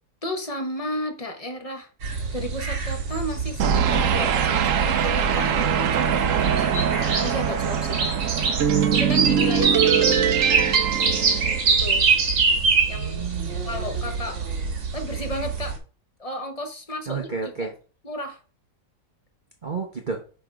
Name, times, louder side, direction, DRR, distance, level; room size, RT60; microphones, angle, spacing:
voice 1, 0.2-1.9 2.3-6.9 7.2-8.1 8.9-10.5 11.7-12.0 12.9-13.2 13.6-14.4 14.9-15.8 16.2-17.3 18.0-18.4, left 1 dB, 30° left, 4 dB, 0.6 m, -33 dB
sound 1, 2.0-15.8, right 5 dB, 90° right, 2.1 m, -25 dB
sound 2, 3.6-12.1, right 8 dB, 65° right, 0.9 m, -23 dB
voice 2, 12.9-13.7 17.1-17.7 19.6-20.2, right 5 dB, 40° right, 1 dB, 0.8 m, -31 dB
6.8 x 3.5 x 5.0 m, 0.37 s
omnidirectional pair, 1.9 m